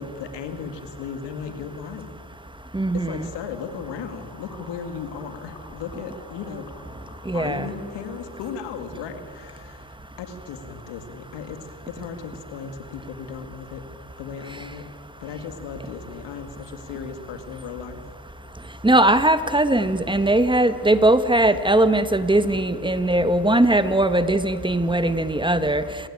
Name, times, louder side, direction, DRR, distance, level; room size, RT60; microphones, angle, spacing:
voice 1, 0.0-2.1 2.9-6.7 7.3-9.9 10.2-13.8 14.2-14.9 15.2-18.0, left 6 dB, 85° left, 8 dB, 2.4 m, -36 dB
voice 2, 2.7-3.3 7.3-7.7 18.8-25.8, right 1 dB, 10° right, 11 dB, 1.5 m, -19 dB
sound 1, 2.8-8.9, left 2 dB, 60° left, 5.3 m, -49 dB
26.5 x 20.0 x 8.8 m, 2.2 s
supercardioid pair, 70°, 41 cm